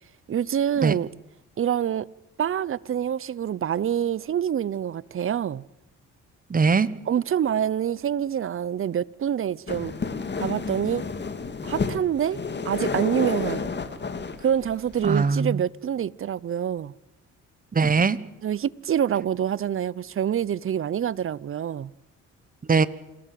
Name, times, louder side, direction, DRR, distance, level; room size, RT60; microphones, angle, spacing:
voice 1, 0.3-1.1 1.6-2.1 2.4-5.6 7.1-9.9 10.4-11.0 11.6-13.7 14.4-16.9 18.4-21.9, right 9 dB, 45° right, 0.8 m, -26 dB
voice 2, 6.5-6.9 15.0-15.6 17.7-18.2 22.7-22.9, right 5 dB, 30° right, 1.2 m, -20 dB
sound 1, 9.7-15.4, left 4 dB, 35° left, 2.5 m, -31 dB
27.5 x 18.0 x 7.8 m
cardioid pair, 90°, 30 cm